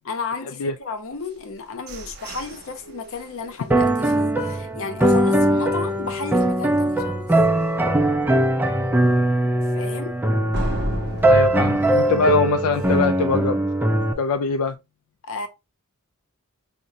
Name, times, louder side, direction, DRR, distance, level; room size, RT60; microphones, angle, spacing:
voice 1, 0.1-7.3 9.7-10.2 15.2-15.5, left 4 dB, 65° left, 0.7 m, -33 dB
sound 1, 1.2-5.1 5.6-5.7 6.1-6.5 6.8-6.9 7.4-7.5 10.5-13.2, right 1 dB, 50° right, 0.6 m, -34 dB
sound 2, 3.7-14.1, right 1 dB, 10° right, 0.3 m, -20 dB
voice 2, 11.3-13.6 14.2-14.8, left 4 dB, 85° left, 0.3 m, -23 dB
4.8 x 2.2 x 2.6 m
head